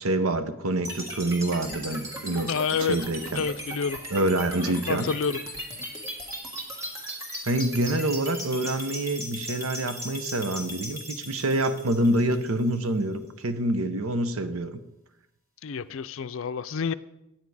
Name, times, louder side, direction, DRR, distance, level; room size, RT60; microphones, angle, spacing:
voice 1, 0.0-2.5 2.8-3.4 4.1-5.1 7.4-14.8, right 1 dB, 85° right, 10 dB, 0.8 m, -26 dB
sound 1, 0.8-12.9, equal, 15° right, 1.8 m, -38 dB
voice 2, 2.4-3.0 3.3-4.0 4.9-5.4 15.6-16.9, left 6 dB, 65° left, 14 dB, 0.4 m, -28 dB
9.3 x 9.2 x 4.8 m, 0.88 s
head